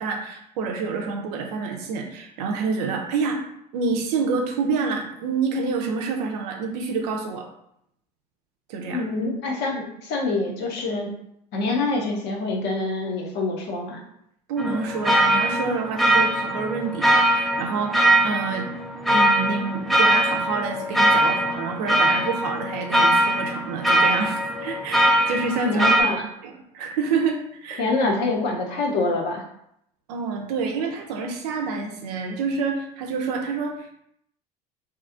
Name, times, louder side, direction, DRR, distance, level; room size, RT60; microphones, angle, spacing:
voice 1, 0.0-3.4 3.7-7.5 8.7-9.0 14.5-18.7 19.1-25.9 26.4-27.8 30.1-33.9, right 4 dB, 70° right, 2 dB, 0.6 m, -27 dB
voice 2, 8.9-11.1 11.5-14.0 25.6-26.3 27.8-29.4, left 3 dB, 55° left, 0 dB, 0.8 m, -25 dB
sound 1, 14.6-26.0, right 1 dB, ahead, 0.4 m, -21 dB
2.8 x 2.3 x 2.5 m, 0.75 s
hypercardioid pair, 70°, 21 cm